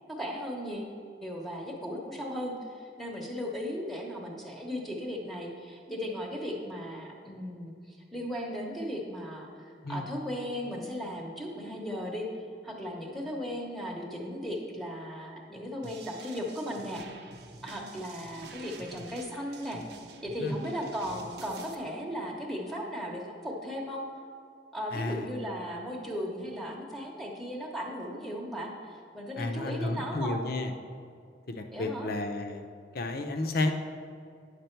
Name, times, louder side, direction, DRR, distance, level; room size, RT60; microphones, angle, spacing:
voice 1, 0.1-0.9 1.2-12.3 12.6-17.2 17.6-19.8 20.2-24.0 24.7-30.4 31.7-32.1, equal, ahead, -1 dB, 0.9 m, -36 dB
sound 1, 15.8-21.7, right 3 dB, 65° right, 0.7 m, -48 dB
voice 2, 24.9-25.3 29.4-30.7 31.5-32.6 32.9-33.7, left 2 dB, 60° left, 6 dB, 0.7 m, -32 dB
9.6 x 6.8 x 4.5 m, 2.3 s
head